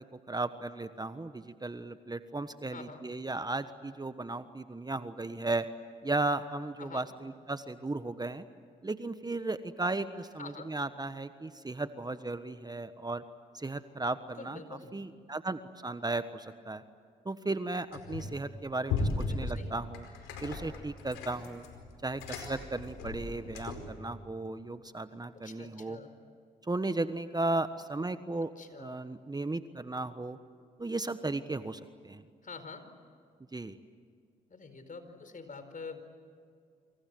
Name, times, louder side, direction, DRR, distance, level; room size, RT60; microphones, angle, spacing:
voice 1, 0.3-5.7 6.0-8.4 8.8-13.2 13.5-16.8 17.2-19.1 19.3-20.1 20.4-21.6 22.0-26.0 26.7-28.5 28.8-30.4 30.8-32.2 33.5-33.8, right 2 dB, 20° right, 11 dB, 1.3 m, -35 dB
voice 2, 10.4-10.7 14.4-15.0 19.3-19.7 25.4-26.1 28.6-29.0 32.4-32.8 34.5-36.0, left 4 dB, 45° left, 9 dB, 4.6 m, -46 dB
sound 1, 17.9-18.4 18.9-24.0, left 3 dB, 85° left, 4.8 m, -37 dB
28.0 x 26.0 x 7.9 m, 2.2 s
supercardioid pair, 50°, 19 cm